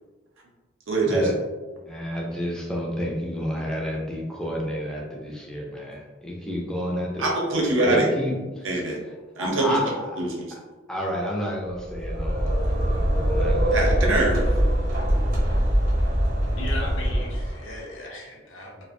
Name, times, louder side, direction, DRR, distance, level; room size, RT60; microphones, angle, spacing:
voice 1, 0.9-1.3 7.2-8.0 8.6-9.0 9.4-9.8 10.2-10.5 13.7-14.4, right 2 dB, 85° right, -1 dB, 0.6 m, -23 dB
voice 2, 1.9-7.3 7.6-8.7 9.4-10.2 10.9-13.0 13.2-14.0, equal, 5° left, -2 dB, 0.4 m, -30 dB
sound 1, 11.8-17.8, equal, 45° right, 0.7 m, -23 dB
voice 3, 16.6-18.8, left 1 dB, 70° left, -1 dB, 0.6 m, -37 dB
2.4 x 2.0 x 2.5 m, 1.3 s
head